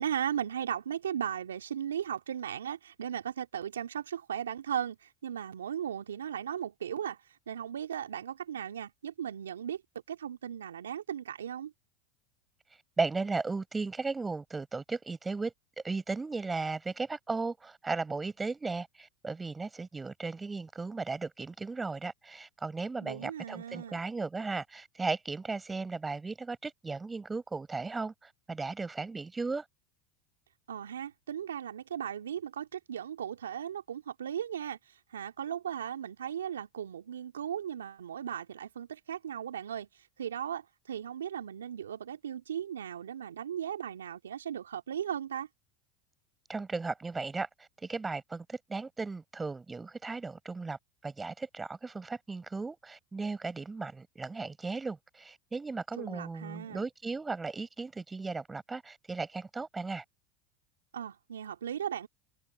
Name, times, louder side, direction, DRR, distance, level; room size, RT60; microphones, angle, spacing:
voice 1, 0.0-7.2 7.5-9.8 10.1-11.7 23.0-24.0 30.7-34.8 35.1-39.9 40.2-45.5 56.0-56.8 60.9-62.1, right 9 dB, 80° right, 2.6 m, -37 dB
voice 2, 13.0-15.5 15.8-29.6 46.5-47.5 47.8-50.8 51.0-60.0, right 3 dB, 15° right, 6.7 m, -36 dB
hypercardioid pair, 85°, 0 cm